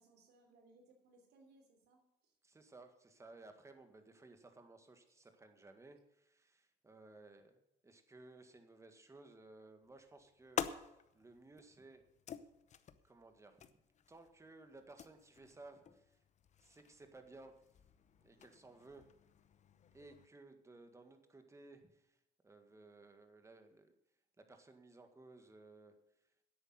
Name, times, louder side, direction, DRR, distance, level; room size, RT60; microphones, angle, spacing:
voice 1, 0.0-2.4, right 2 dB, 75° right, 3 dB, 3.3 m, -67 dB
voice 2, 2.4-7.6 7.8-12.0 13.0-13.6 14.1-16.2 16.6-17.6 18.2-19.1 19.9-22.2 22.4-23.9 24.4-26.0, right 2 dB, 15° right, 6 dB, 1.8 m, -58 dB
sound 1, 9.8-20.3, left 8 dB, 45° left, 0.8 m, -49 dB
10.5 x 8.4 x 7.9 m, 0.86 s
cardioid pair, 110°, 17 cm